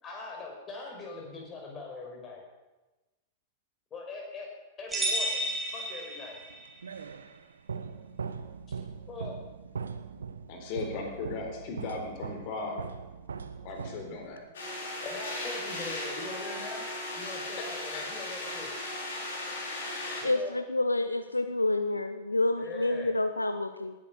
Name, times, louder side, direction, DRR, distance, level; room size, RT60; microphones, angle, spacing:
voice 1, 0.0-2.4 3.9-4.5 4.8-5.4 5.7-6.4 9.1-9.4 15.0-18.7 20.2-20.6 22.6-23.2, left 3 dB, 25° left, 0 dB, 5.8 m, -42 dB
sound 1, 4.9-6.7, right 1 dB, 10° right, 4.3 m, -32 dB
sound 2, 6.4-14.5, right 6 dB, 70° right, 1.0 m, -41 dB
voice 2, 10.5-12.9 13.6-14.4 17.9-18.0, left 3 dB, 45° left, 3 dB, 4.0 m, -37 dB
sound 3, 14.5-20.2, left 2 dB, 60° left, 5.4 m, -37 dB
voice 3, 20.2-23.9, left 2 dB, 85° left, 10 dB, 0.7 m, -28 dB
19.0 x 11.0 x 6.6 m, 1.1 s
figure-of-eight pair, 95°, 0 cm